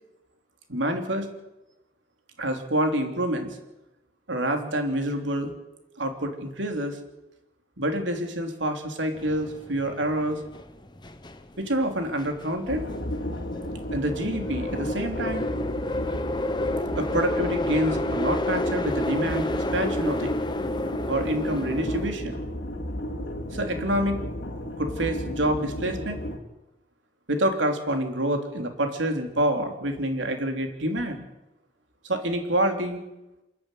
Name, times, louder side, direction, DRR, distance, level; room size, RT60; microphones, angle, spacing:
voice 1, 0.7-1.3 2.4-3.6 4.3-5.5 6.0-7.0 7.8-10.4 11.6-12.9 13.9-15.5 17.0-20.3 21.1-22.3 23.5-24.2 24.8-26.2 27.3-31.2 32.0-33.0, right 1 dB, 85° right, 5 dB, 3.3 m, -27 dB
sound 1, 9.2-22.1, left 1 dB, 25° left, 1.2 m, -31 dB
sound 2, 12.7-26.4, equal, 70° left, 3.2 m, -33 dB
27.5 x 11.0 x 9.2 m, 0.97 s
head